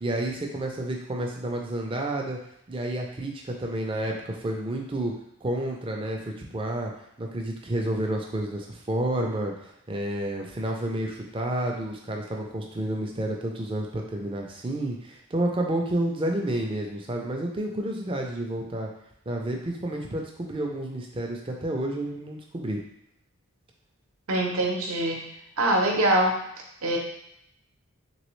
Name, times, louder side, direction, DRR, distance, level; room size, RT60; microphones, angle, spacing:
voice 1, 0.0-2.4 2.7-5.1 5.4-6.9 7.2-18.9 19.3-22.8, right 1 dB, 25° right, 1 dB, 0.4 m, -30 dB
voice 2, 24.3-25.2 25.6-26.4 26.8-27.0, right 1 dB, 70° right, 0 dB, 0.7 m, -23 dB
3.3 x 3.1 x 3.1 m, 0.77 s
head